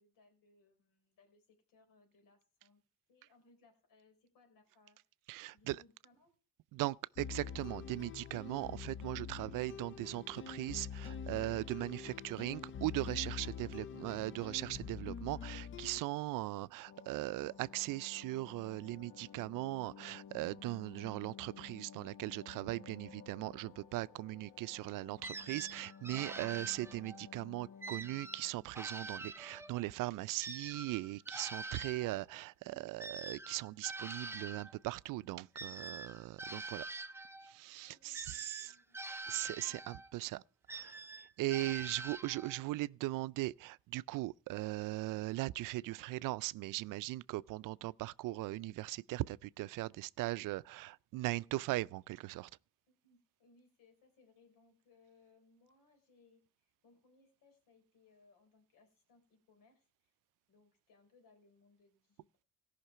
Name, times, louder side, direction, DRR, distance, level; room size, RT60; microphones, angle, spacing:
voice 1, 0.0-2.8 3.1-5.0 5.5-6.3 16.5-16.8 37.8-39.0 39.7-39.8 41.6-42.0 52.9-60.2 60.5-62.4, left 3 dB, 85° left, 4.0 m, -68 dB
voice 2, 5.3-5.8 6.7-36.9 37.4-38.7 39.3-40.4 40.7-52.5, right 18 dB, 75° right, 0.5 m, -39 dB
sound 1, 7.2-16.0, left 7 dB, 40° left, 0.5 m, -45 dB
sound 2, 16.9-29.9 30.2-30.3, left 7 dB, 65° left, 1.2 m, -55 dB
sound 3, 25.2-27.3 27.8-29.9 30.4-34.7 35.5-37.5 38.1-40.1 40.7-42.7, right 3 dB, 10° right, 0.5 m, -46 dB
17.0 x 5.8 x 5.6 m
cardioid pair, 135°, 33 cm